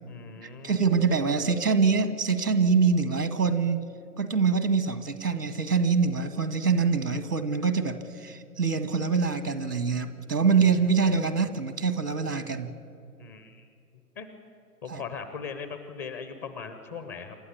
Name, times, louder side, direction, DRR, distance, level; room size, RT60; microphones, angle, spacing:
voice 1, 0.1-0.9 13.2-13.7 14.2-14.3 14.8-17.4, left 6 dB, 10° left, 9 dB, 0.5 m, -39 dB
voice 2, 0.6-3.8 4.2-12.7 14.9-15.0, right 5 dB, 80° right, 11 dB, 2.0 m, -25 dB
28.0 x 12.5 x 9.7 m, 2.3 s
figure-of-eight pair, 115°, 46 cm